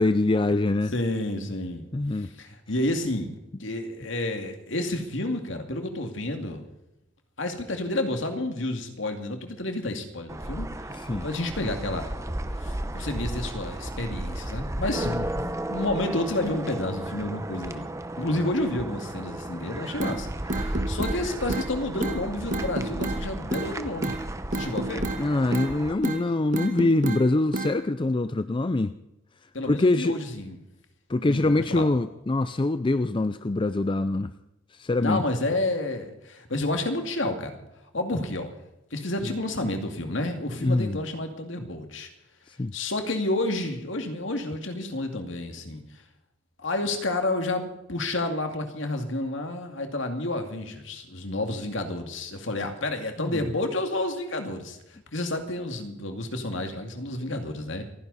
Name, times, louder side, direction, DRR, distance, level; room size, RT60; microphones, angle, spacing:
voice 1, 0.0-0.9 1.9-2.3 10.9-11.3 15.1-15.5 18.3-18.5 25.2-28.9 29.7-30.2 31.1-34.3 34.7-35.2 40.6-41.0 42.5-42.7 53.2-53.5, left 2 dB, 25° left, 12 dB, 0.5 m, -24 dB
voice 2, 0.9-1.9 2.2-6.6 7.4-10.7 11.2-12.1 12.6-15.3 15.7-17.9 18.2-24.2 24.5-25.1 29.5-30.6 31.3-31.9 35.0-37.6 37.9-38.5 38.9-42.1 42.7-46.0 46.6-57.8, left 1 dB, 65° left, 5 dB, 2.4 m, -30 dB
sound 1, 10.3-25.9, right 1 dB, 15° right, 0.9 m, -34 dB
sound 2, 20.0-20.2 20.5-21.2 21.5-21.7 22.0-22.2 22.5-23.2 23.5-23.7 24.0-24.2 24.5-25.2 25.5-25.7 26.0-26.2 26.5-27.2 27.5-27.7, right 2 dB, 40° right, 1.3 m, -29 dB
28.0 x 10.5 x 4.1 m, 0.89 s
head